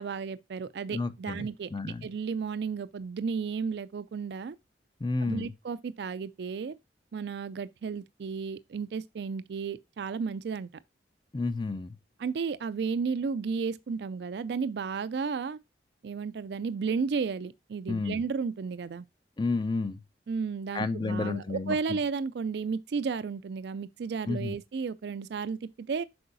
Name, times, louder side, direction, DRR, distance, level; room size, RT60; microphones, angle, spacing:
voice 1, 0.0-4.6 5.2-6.8 7.1-10.7 12.2-15.6 16.0-19.0 20.3-26.0, right 5 dB, 70° right, 0.4 m, -33 dB
voice 2, 0.9-2.1 5.0-5.5 11.3-12.0 17.9-18.2 19.4-20.0 20.7-22.0 24.3-24.5, left 3 dB, 25° left, 0.4 m, -31 dB
7.8 x 5.5 x 2.6 m
head